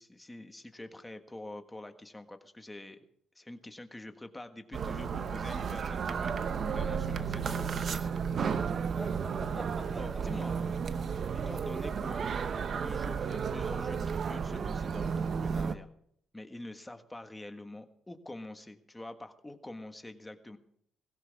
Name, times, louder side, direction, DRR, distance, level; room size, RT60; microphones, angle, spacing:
voice 1, 0.0-3.0 3.3-6.4 6.7-8.1 9.9-10.6 11.3-12.4 12.7-15.9 16.3-20.6, left 1 dB, 15° left, 7 dB, 1.6 m, -46 dB
sound 1, 4.7-15.7, right 6 dB, 50° right, 0.9 m, -33 dB
sound 2, 8.9-12.6, equal, 5° right, 4.5 m, -48 dB
19.0 x 16.0 x 3.6 m, 0.68 s
cardioid pair, 90°, 0 cm